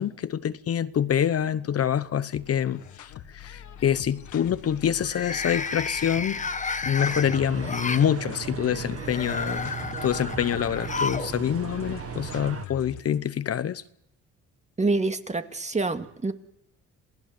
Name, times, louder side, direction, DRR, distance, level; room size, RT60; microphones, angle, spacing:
voice 1, 0.0-6.4 6.9-9.7 10.0-13.8, left 9 dB, 50° left, 1.0 m, -26 dB
sound 1, 1.5-2.1 2.5-2.9 5.0-8.1 8.9-11.3 11.6-11.7 12.8-12.9, left 4 dB, 25° left, 1.2 m, -32 dB
sound 2, 2.3-13.2, left 10 dB, 75° left, 1.8 m, -43 dB
sound 3, 7.0-12.7, right 8 dB, 50° right, 1.7 m, -37 dB
voice 2, 14.8-16.3, right 3 dB, 25° right, 2.0 m, -26 dB
28.0 x 18.5 x 7.8 m
cardioid pair, 90°, 30 cm